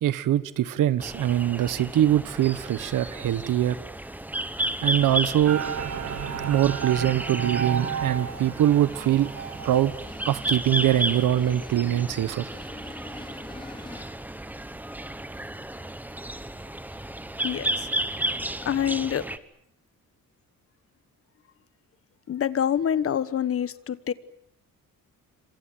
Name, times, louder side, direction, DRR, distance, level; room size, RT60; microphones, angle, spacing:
voice 1, 0.0-3.8 4.8-5.6 6.5-9.3 9.6-9.9 10.2-12.4, right 12 dB, 75° right, 1.3 m, -23 dB
sound 1, 1.0-19.4, right 1 dB, 5° right, 1.2 m, -33 dB
sound 2, 5.5-10.0, right 7 dB, 50° right, 2.5 m, -32 dB
sound 3, 8.7-14.3, left 2 dB, 15° left, 2.6 m, -47 dB
voice 2, 17.4-17.9 18.6-19.2 22.3-24.1, left 9 dB, 45° left, 1.3 m, -26 dB
27.5 x 26.5 x 7.8 m
cardioid pair, 160°, 33 cm